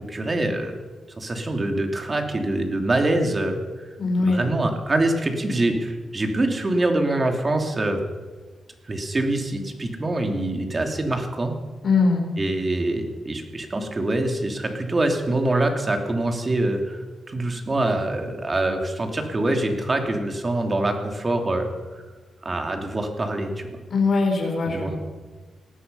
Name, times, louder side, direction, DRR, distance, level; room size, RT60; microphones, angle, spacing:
voice 1, 0.1-0.7 1.2-3.9 4.2-8.0 8.9-11.5 12.4-22.0 22.4-23.7 24.7-25.0, right 2 dB, 35° right, 4 dB, 2.9 m, -25 dB
voice 2, 4.0-4.4 11.8-12.3 23.9-25.0, left 3 dB, 60° left, 0 dB, 4.4 m, -21 dB
18.5 x 13.5 x 5.6 m, 1.3 s
cardioid pair, 70°, 0 cm